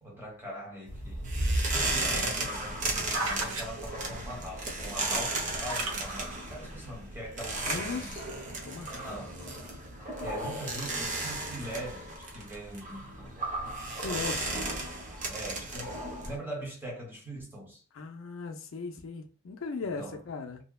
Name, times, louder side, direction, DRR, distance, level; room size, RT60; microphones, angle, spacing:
voice 1, 0.0-8.1 8.9-9.4 10.2-13.6 14.1-14.7 15.3-16.0 16.3-17.8 19.9-20.2, right 1 dB, 10° right, 0.9 m, -42 dB
sound 1, 0.9-16.4, right 2 dB, 35° right, 0.6 m, -34 dB
sound 2, 2.6-3.7 4.8-6.0 6.7-6.8, right 2 dB, 75° right, 0.7 m, -35 dB
voice 2, 7.6-8.2 8.6-9.2 14.0-14.4 17.9-20.6, left 4 dB, 65° left, 0.4 m, -37 dB
2.7 x 2.1 x 2.2 m
head